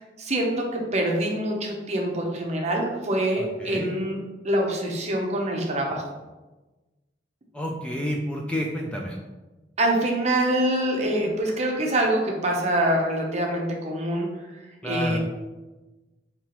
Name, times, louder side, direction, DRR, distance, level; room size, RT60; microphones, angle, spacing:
voice 1, 0.2-0.7 0.9-6.0 9.8-14.3 14.8-15.2, right 1 dB, 40° right, 0 dB, 0.7 m, -25 dB
voice 2, 3.4-3.9 7.5-9.2 14.8-15.2, equal, 5° left, -1 dB, 0.4 m, -30 dB
5.3 x 2.9 x 3.0 m, 1.2 s
head